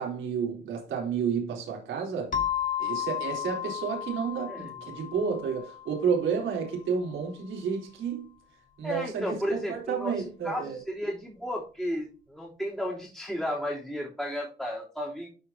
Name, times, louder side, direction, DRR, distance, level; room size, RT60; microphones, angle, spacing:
voice 1, 0.0-2.3 2.8-8.3 8.8-10.8, right 6 dB, 80° right, 3.9 m, -31 dB
sound 1, 2.3-6.7, left 10 dB, 40° left, 2.0 m, -34 dB
voice 2, 8.8-10.2 10.4-15.3, equal, ahead, 3.4 m, -33 dB
12.0 x 4.9 x 2.8 m
cardioid pair, 90°, 20 cm